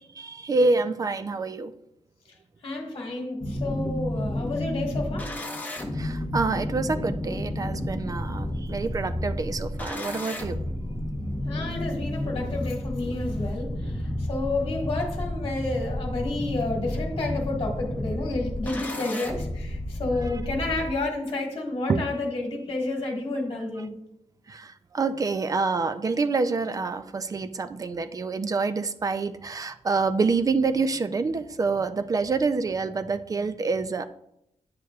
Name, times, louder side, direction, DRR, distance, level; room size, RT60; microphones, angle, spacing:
voice 1, 0.2-1.7 3.8-3.9 5.9-10.6 20.3-20.4 21.9-22.0 24.5-34.0, right 4 dB, 30° right, 11 dB, 0.3 m, -27 dB
voice 2, 2.6-5.3 11.5-23.9, left 2 dB, 50° left, 0 dB, 1.5 m, -30 dB
sound 1, 3.4-20.9, left 1 dB, 15° left, 0.8 m, -31 dB
9.4 x 6.3 x 2.3 m, 0.79 s
wide cardioid pair, 170°, 12 cm